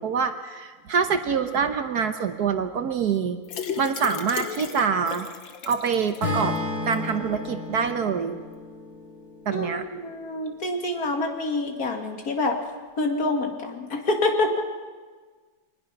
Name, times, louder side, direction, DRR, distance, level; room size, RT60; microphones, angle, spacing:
voice 1, 0.0-3.4 3.8-5.3 5.7-6.6 6.9-8.4 9.5-9.8, right 6 dB, 60° right, 8 dB, 1.4 m, -25 dB
sound 1, 3.4-6.6 6.9-7.0 7.3-7.4, left 7 dB, 80° left, 2.0 m, -35 dB
Acoustic guitar / Strum, 6.2-10.4, left 2 dB, 30° left, 5.7 m, -33 dB
voice 2, 9.5-12.6 13.0-14.6, left 2 dB, 50° left, 3 dB, 2.5 m, -26 dB
23.5 x 19.5 x 5.9 m, 1.4 s
omnidirectional pair, 2.1 m